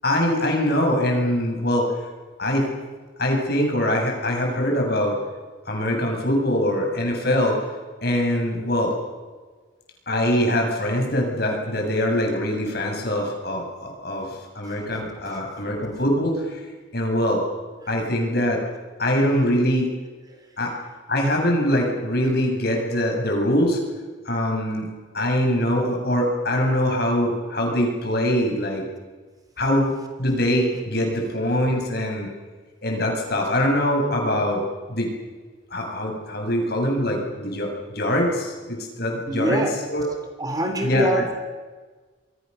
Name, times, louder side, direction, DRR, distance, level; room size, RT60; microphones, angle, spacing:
voice 1, 0.0-1.9 2.4-2.7 3.2-5.2 5.6-7.6 8.0-8.9 10.1-14.3 14.5-16.6 16.9-17.4 17.9-18.6 19.0-19.9 20.6-20.7 21.1-23.8 24.2-24.9 25.1-28.8 29.6-29.9 30.2-32.3 32.8-34.6 34.9-35.1 35.7-39.6 39.9-40.1 40.8-41.2, left 1 dB, 55° left, 2 dB, 7.5 m, -23 dB
voice 2, 39.3-39.8 40.4-41.4, right 1 dB, 20° right, 5 dB, 3.2 m, -24 dB
27.5 x 23.5 x 6.9 m, 1.4 s
head